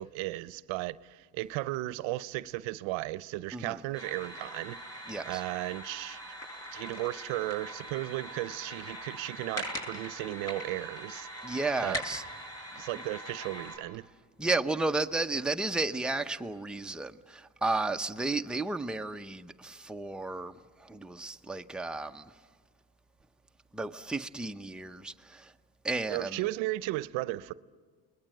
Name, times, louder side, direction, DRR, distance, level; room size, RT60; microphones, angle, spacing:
voice 1, 0.0-4.8 5.3-6.2 6.7-11.3 11.8-12.0 12.8-14.0 26.1-27.5, right 18 dB, 75° right, 0.7 m, -35 dB
sound 1, 3.9-13.8, equal, 30° left, 7.7 m, -41 dB
voice 2, 5.1-5.4 11.4-12.2 14.4-22.2 23.7-25.5 25.8-26.4, right 3 dB, ahead, 0.7 m, -33 dB
30.0 x 20.5 x 7.7 m
supercardioid pair, 80°, 46 cm